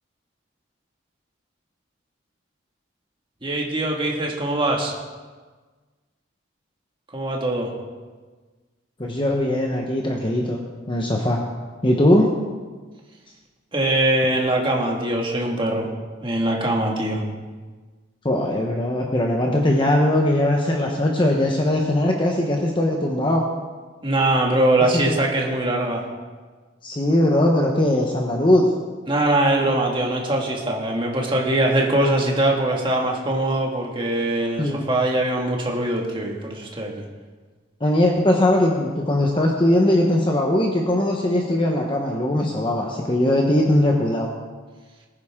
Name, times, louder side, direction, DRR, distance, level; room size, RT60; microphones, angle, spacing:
voice 1, 3.4-4.9 7.1-7.7 13.7-15.9 16.2-17.2 24.0-26.1 29.1-37.0, right 1 dB, 25° right, -1 dB, 2.0 m, -22 dB
voice 2, 9.0-10.6 10.9-11.4 11.8-12.3 18.2-23.4 25.1-25.2 26.8-28.6 34.6-34.8 37.8-44.3, left 1 dB, 25° left, 0 dB, 1.0 m, -20 dB
19.5 x 9.6 x 3.7 m, 1.4 s
head